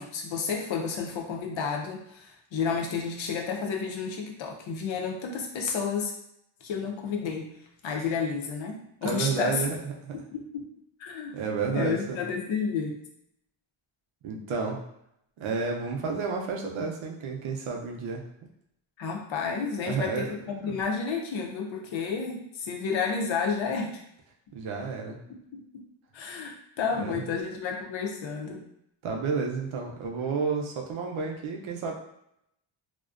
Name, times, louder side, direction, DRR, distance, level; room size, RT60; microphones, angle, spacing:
voice 1, 0.0-6.1 6.6-7.5 7.8-9.6 10.3-10.7 11.0-11.4 11.7-13.0 19.0-24.0 25.3-25.8 26.1-28.7, left 5 dB, 65° left, 1 dB, 0.6 m, -31 dB
voice 2, 9.0-10.1 11.3-12.2 14.2-14.8 15.4-18.2 19.8-20.3 20.6-20.8 24.5-25.2 26.9-27.2 29.0-31.9, right 5 dB, 70° right, 0 dB, 0.6 m, -31 dB
2.4 x 2.1 x 2.4 m, 0.77 s
wide cardioid pair, 125°, 49 cm